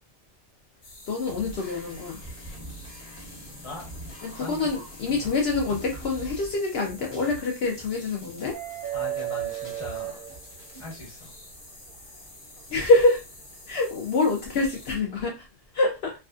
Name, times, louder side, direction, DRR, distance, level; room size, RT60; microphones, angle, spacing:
sound 1, 0.8-15.0, left 2 dB, 85° left, 1.5 m, -48 dB
voice 1, 1.1-2.2 4.2-8.6 12.7-13.2 13.7-15.5 15.7-16.1, left 3 dB, 70° left, 0 dB, 0.8 m, -25 dB
sound 2, 1.3-11.3, right 1 dB, 15° left, 0.8 m, -44 dB
sound 3, 8.5-10.9 12.6-12.7 14.5-14.7, right 12 dB, 60° right, 0.6 m, -33 dB
voice 2, 8.9-10.3 10.8-11.3, left 2 dB, 30° left, -2 dB, 1.1 m, -40 dB
3.2 x 2.4 x 2.4 m, 0.28 s
omnidirectional pair, 1.1 m